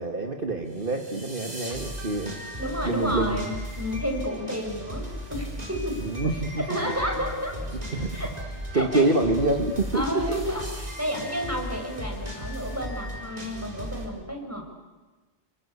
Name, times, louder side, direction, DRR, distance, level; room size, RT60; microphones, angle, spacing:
voice 1, 0.0-2.4 2.8-3.4 6.0-6.6 7.9-8.1 8.7-10.0, right 2 dB, 55° right, 4 dB, 2.1 m, -26 dB
sound 1, 0.7-14.1, equal, 40° right, 4.8 m, -36 dB
voice 2, 2.6-6.0 6.7-7.6 8.1-8.3 8.7-9.2 9.9-14.6, equal, 15° right, 1 dB, 6.5 m, -31 dB
29.5 x 23.5 x 8.6 m, 1.3 s
omnidirectional pair, 1.1 m